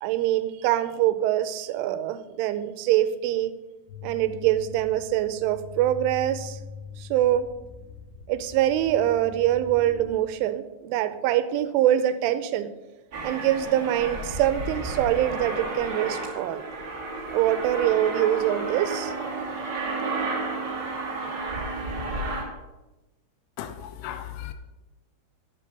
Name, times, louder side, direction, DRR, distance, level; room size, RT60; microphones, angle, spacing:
voice 1, 0.0-3.5 4.0-6.6 7.0-7.5 8.3-12.7 13.2-16.7 17.3-19.1, right 12 dB, 85° right, 12 dB, 3.1 m, -24 dB
sound 1, 3.9-10.2, left 5 dB, 65° left, 3.0 m, -42 dB
Aircraft, 13.1-22.4, right 3 dB, 40° right, 1.5 m, -32 dB
voice 2, 23.6-24.5, left 11 dB, 85° left, 10 dB, 3.0 m, -36 dB
11.0 x 8.5 x 5.3 m, 1.1 s
omnidirectional pair, 5.6 m